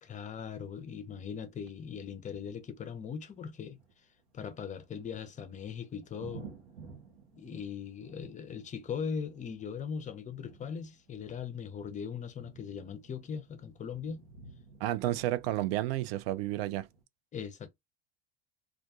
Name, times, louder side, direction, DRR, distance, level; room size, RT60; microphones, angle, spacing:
voice 1, 0.0-3.8 4.3-6.5 7.3-14.2 17.3-17.7, left 6 dB, 25° left, 0.5 m, -40 dB
sound 1, 0.7-17.0, right 5 dB, 90° right, 0.9 m, -55 dB
voice 2, 14.8-16.9, right 14 dB, 75° right, 0.5 m, -31 dB
2.4 x 2.2 x 2.7 m
hypercardioid pair, 90°, 31 cm